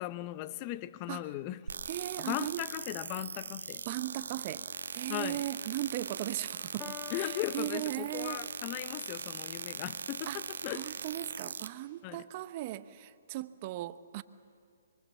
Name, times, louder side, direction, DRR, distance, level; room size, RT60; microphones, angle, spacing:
voice 1, 0.0-1.6 2.2-3.8 5.1-5.4 7.1-10.9 12.0-12.2, left 15 dB, 35° left, 0.8 m, -38 dB
sound 1, 1.7-11.7, right 5 dB, 75° right, 1.2 m, -40 dB
voice 2, 1.9-2.6 3.9-8.4 10.3-10.4 10.7-14.2, right 15 dB, 40° right, 0.9 m, -38 dB
Piano, 6.8-8.8, left 7 dB, 15° left, 1.4 m, -48 dB
25.5 x 23.5 x 7.3 m
hypercardioid pair, 135°, 0 cm